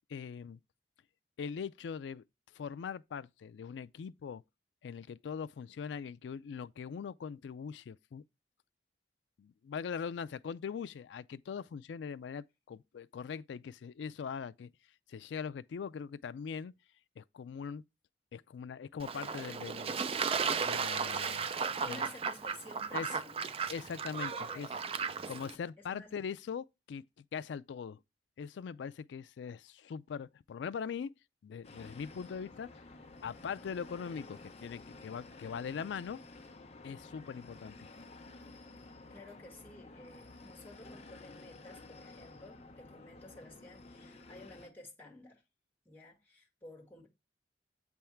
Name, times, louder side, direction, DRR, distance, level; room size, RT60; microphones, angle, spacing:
voice 1, 0.1-0.6 1.4-4.4 4.8-8.2 9.4-14.7 15.1-16.7 17.2-17.8 18.3-20.0 20.6-21.4 21.9-22.0 22.9-23.1 23.7-24.7 25.3-28.0 28.4-31.1 31.4-32.8 33.2-36.2 36.8-37.9, left 6 dB, 85° left, 0.3 m, -41 dB
Fowl / Bird / Water, 19.0-25.5, right 6 dB, 35° right, 0.4 m, -35 dB
voice 2, 20.9-23.6 24.3-24.7 25.4-26.2 39.1-45.4 45.9-47.1, left 2 dB, 10° left, 1.8 m, -53 dB
sound 1, 31.6-44.7, left 3 dB, 35° left, 0.8 m, -52 dB
7.8 x 3.5 x 4.4 m
head